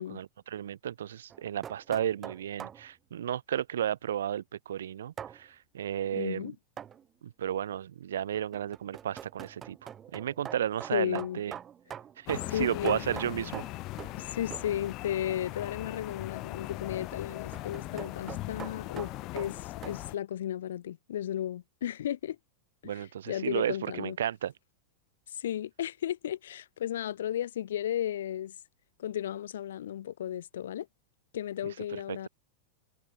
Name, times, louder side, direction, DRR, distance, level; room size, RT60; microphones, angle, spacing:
voice 1, 0.0-6.5 7.2-11.5 12.2-13.6 22.8-24.5 31.6-32.3, right 10 dB, 65° right, 0.6 m, -33 dB
sound 1, 1.3-2.9 5.2-5.4 6.8-7.0 8.3-14.2 14.5-14.8 16.9-20.0, right 9 dB, 25° right, 0.8 m, -44 dB
voice 2, 6.1-6.5 10.9-11.4 12.5-13.0 14.1-22.4 22.8-24.2 25.3-28.6 29.0-30.9 31.3-32.3, left 11 dB, 60° left, 0.4 m, -34 dB
sound 2, 12.3-20.2, left 19 dB, 40° left, 1.4 m, -40 dB
figure-of-eight pair, 90°, 0 cm